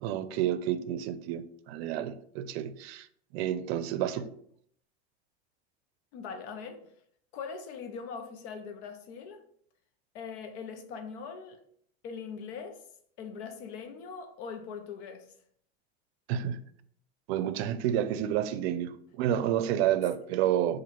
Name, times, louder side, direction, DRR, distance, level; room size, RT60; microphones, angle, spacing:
voice 1, 0.0-3.1 3.3-4.3 16.3-16.6 17.3-20.8, right 11 dB, 70° right, 0.5 m, -30 dB
voice 2, 6.1-6.8 7.3-9.4 10.1-11.6 12.0-12.8 13.2-15.3, left 6 dB, 80° left, 0.9 m, -41 dB
4.4 x 2.6 x 4.2 m
supercardioid pair, 125°, 32 cm